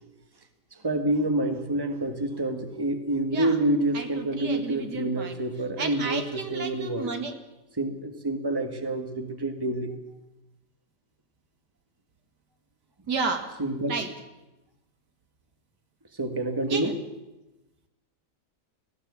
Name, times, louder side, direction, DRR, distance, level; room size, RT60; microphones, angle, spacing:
voice 1, 0.7-7.1 7.7-9.9 13.6-14.0 16.1-17.0, right 1 dB, 15° right, 6 dB, 1.8 m, -28 dB
voice 2, 3.9-5.4 5.8-7.3 13.1-13.5 13.9-14.1 16.7-16.9, right 4 dB, 85° right, 6 dB, 2.6 m, -32 dB
19.5 x 16.5 x 8.4 m, 1.0 s
omnidirectional pair, 1.8 m